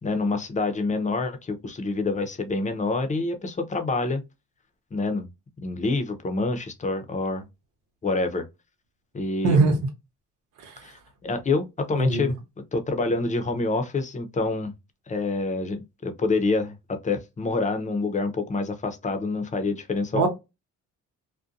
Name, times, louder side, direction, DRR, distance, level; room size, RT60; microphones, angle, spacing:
voice 1, 0.0-4.2 4.9-5.3 5.6-7.4 8.0-8.5 9.1-9.8 10.8-12.4 12.7-14.7 15.1-20.3, left 3 dB, 25° left, 0.6 m, -27 dB
voice 2, 9.4-9.8 10.6-10.9 12.0-12.3 20.1-20.3, right 3 dB, 90° right, 1.0 m, -21 dB
2.6 x 2.2 x 2.5 m
cardioid pair, 90°, 30 cm